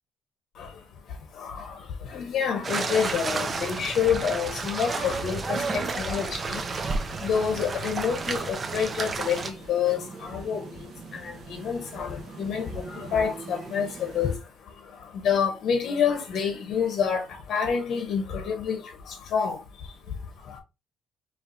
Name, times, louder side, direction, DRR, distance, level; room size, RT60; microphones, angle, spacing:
voice 1, 2.1-6.6 7.2-10.6 11.5-12.6 13.0-14.3 15.2-17.2 17.5-18.8 19.3-19.6, left 7 dB, 60° left, 1.4 m, -27 dB
sound 1, 2.6-9.5, right 4 dB, 30° right, 0.7 m, -31 dB
sound 2, 6.1-14.4, right 4 dB, 55° right, 1.2 m, -44 dB
5.0 x 3.1 x 2.9 m
cardioid pair, 125°, 0 cm